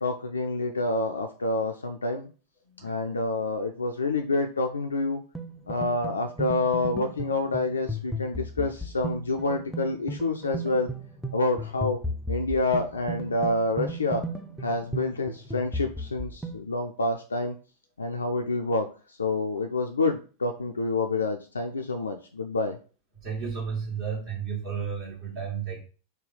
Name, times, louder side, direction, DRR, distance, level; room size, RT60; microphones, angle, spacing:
voice 1, 0.0-2.3 2.8-5.2 5.7-10.9 11.3-12.0 12.3-14.3 14.6-17.6 18.0-22.8, left 2 dB, 75° left, 4 dB, 0.3 m, -28 dB
sound 1, 5.3-16.6, right 1 dB, ahead, 0.4 m, -35 dB
voice 2, 23.2-25.8, right 6 dB, 45° right, -4 dB, 1.1 m, -32 dB
3.3 x 2.2 x 3.9 m, 0.37 s
figure-of-eight pair, 90°, 0 cm